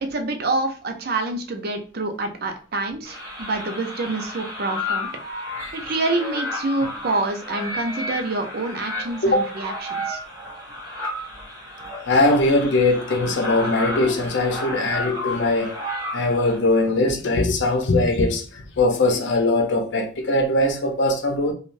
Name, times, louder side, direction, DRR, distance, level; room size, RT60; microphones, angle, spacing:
voice 1, 0.0-5.1 5.7-10.2, right 2 dB, 55° right, 0.6 m, -27 dB
sound 1, 3.0-16.6, left 1 dB, 20° right, 0.9 m, -32 dB
voice 2, 12.1-15.7 16.1-21.5, left 2 dB, 70° left, 0.6 m, -21 dB
3.2 x 2.4 x 2.5 m
head